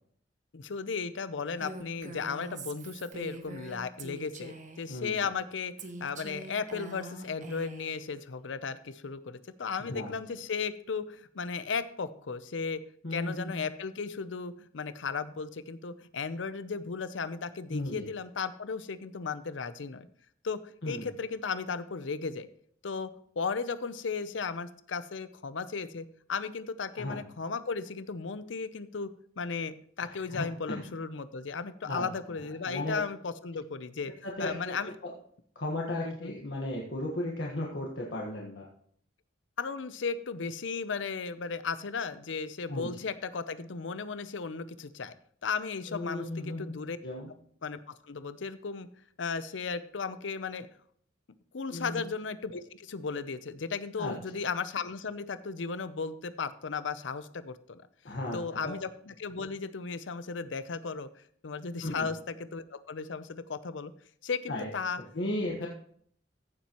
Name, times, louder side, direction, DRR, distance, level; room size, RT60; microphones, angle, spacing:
voice 1, 0.5-5.7 6.0-12.8 13.1-20.1 20.4-20.6 20.8-22.5 22.8-23.1 23.4-29.1 29.4-34.1 34.4-34.9 36.0-36.3 39.6-45.1 45.4-47.0 47.6-48.9 49.2-50.7 51.5-57.8 58.3-63.9 64.2-65.0, left 5 dB, 90° left, 13 dB, 0.6 m, -35 dB
Female speech woman speaking, 1.6-4.9 5.8-8.0, right 2 dB, 45° right, 1.1 m, -44 dB
voice 2, 9.8-10.1 13.0-13.7 17.7-18.1 20.8-21.1 27.0-27.2 30.0-30.8 31.8-32.1 32.6-33.0 34.2-34.7 35.0-35.1 35.5-38.7 42.7-42.9 45.9-46.7 47.0-47.3 51.7-52.0 54.0-54.1 58.0-58.7 61.8-62.1 64.5-64.7 65.1-65.7, left 1 dB, 70° left, -2 dB, 1.4 m, -35 dB
15.0 x 7.3 x 3.0 m, 0.62 s
head